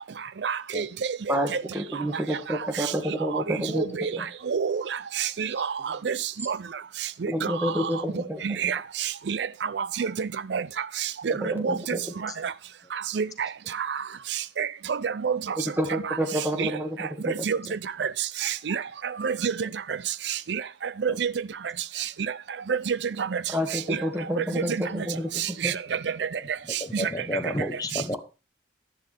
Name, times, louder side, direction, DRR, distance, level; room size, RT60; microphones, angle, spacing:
voice 1, 0.4-0.9 3.3-4.1 4.5-4.8 5.2-5.7 6.0-6.2 6.5-6.6 7.2-7.3 7.6-7.7 8.4-8.8 9.3-9.5 9.7-10.6 11.2-12.0 13.1-13.3 13.8-14.0 14.6-15.4 16.6-16.7 17.5-17.6 18.0-18.1 18.4-18.8 19.2-19.7 20.5-20.6 21.0-21.3 22.7-23.4 23.9-24.0 24.4-24.5 25.6-25.7 26.9-27.1, right 6 dB, 70° right, 0.5 m, -27 dB
voice 2, 1.3-3.8 4.2-4.3 7.3-8.7 11.4-12.0 15.8-17.3 23.5-25.7, equal, 10° right, 1.8 m, -29 dB
voice 3, 26.8-28.2, left 1 dB, 20° left, 1.1 m, -30 dB
10.5 x 10.5 x 3.4 m
head